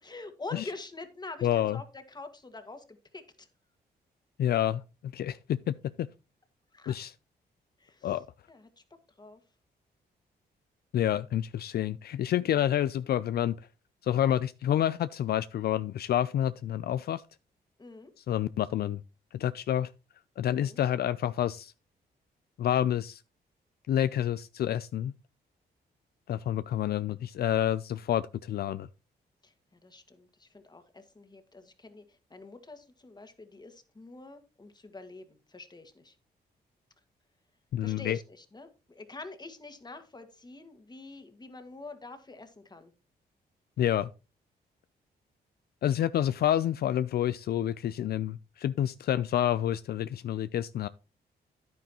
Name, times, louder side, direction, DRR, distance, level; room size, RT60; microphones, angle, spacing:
voice 1, 0.0-3.5 6.7-7.0 7.8-8.1 8.5-8.8 9.2-9.4 12.4-12.6 17.8-18.1 20.5-20.8 29.4-29.5 29.8-36.2 37.8-42.9, left 3 dB, 25° left, 1.8 m, -46 dB
voice 2, 1.4-1.8 4.4-6.1 6.9-7.1 8.0-8.3 10.9-13.6 14.0-17.2 18.2-19.0 19.3-19.9 20.4-21.7 22.6-23.2 23.9-25.1 26.3-28.9 37.7-38.2 43.8-44.1 45.8-50.9, left 11 dB, 65° left, 0.4 m, -28 dB
10.0 x 9.3 x 3.0 m
cardioid pair, 85°, 17 cm